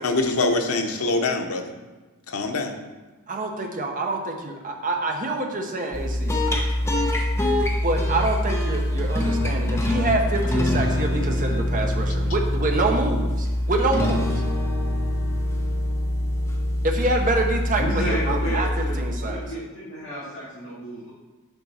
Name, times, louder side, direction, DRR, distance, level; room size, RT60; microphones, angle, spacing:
voice 1, 0.0-1.7 2.3-2.7, left 2 dB, 90° left, 5 dB, 0.8 m, -24 dB
voice 2, 3.3-6.4 7.8-14.3 16.8-19.4, right 2 dB, 40° right, 2 dB, 0.9 m, -26 dB
sound 1, 5.9-19.5, left 1 dB, 10° left, 0.9 m, -24 dB
voice 3, 17.7-21.1, equal, 60° left, -12 dB, 2.3 m, -31 dB
7.0 x 5.3 x 4.3 m, 1.3 s
head